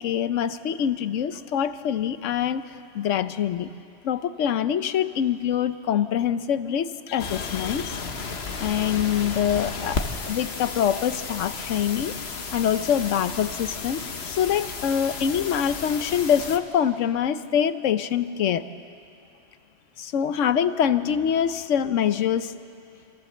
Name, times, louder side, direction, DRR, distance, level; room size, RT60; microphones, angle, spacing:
voice 1, 0.0-2.6 2.9-3.7 4.0-8.0 8.6-12.1 12.5-14.0 14.3-18.6 20.0-22.5, left 9 dB, 80° left, 12 dB, 1.1 m, -24 dB
sound 1, 7.2-16.6, left 4 dB, 60° left, 1.3 m, -33 dB
25.0 x 15.0 x 7.8 m, 2.6 s
omnidirectional pair, 1.3 m